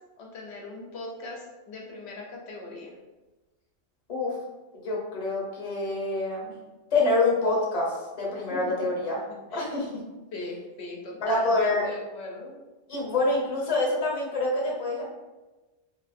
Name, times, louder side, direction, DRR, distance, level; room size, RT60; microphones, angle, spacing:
voice 1, 0.2-2.9 9.5-9.6 10.3-12.5, left 2 dB, 65° left, -1 dB, 0.8 m, -40 dB
voice 2, 4.8-6.5 6.9-9.2 9.5-9.9 11.2-11.9 12.9-15.1, left 2 dB, 35° left, -4 dB, 0.8 m, -26 dB
3.1 x 2.4 x 2.5 m, 1.1 s
omnidirectional pair, 1.3 m